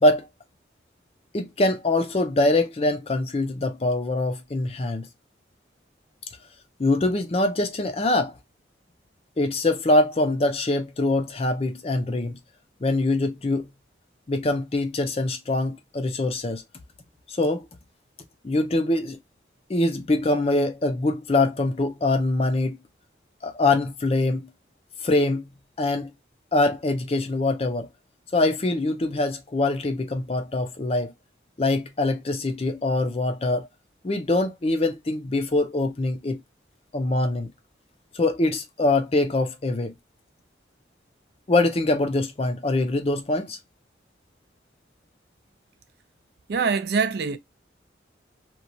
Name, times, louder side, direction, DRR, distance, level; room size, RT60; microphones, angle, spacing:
voice 1, 1.3-5.1 6.8-8.3 9.4-12.4 12.8-13.7 14.3-16.6 17.3-17.7 18.4-19.2 19.7-22.8 23.4-24.5 25.0-25.5 25.8-26.1 26.5-27.9 28.3-31.1 31.6-33.7 34.0-36.4 36.9-37.5 38.1-39.9 41.5-43.6, left 2 dB, 30° left, 0.5 m, -23 dB
voice 2, 46.5-47.4, right 5 dB, 60° right, 0.4 m, -24 dB
2.9 x 2.3 x 2.5 m
head